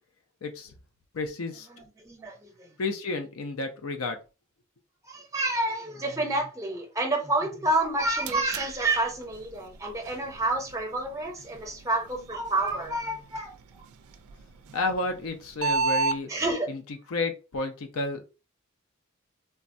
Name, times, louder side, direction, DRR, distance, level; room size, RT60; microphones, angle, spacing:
voice 1, 0.4-0.7 1.1-1.7 2.8-4.2 14.7-16.3 17.1-18.2, left 3 dB, 80° left, 0.5 m, -31 dB
voice 2, 1.7-2.8 5.0-13.5 16.3-16.7, right 2 dB, 15° right, 0.6 m, -29 dB
sound 1, 7.7-16.2, right 4 dB, 90° right, 0.3 m, -35 dB
3.3 x 2.1 x 2.5 m
head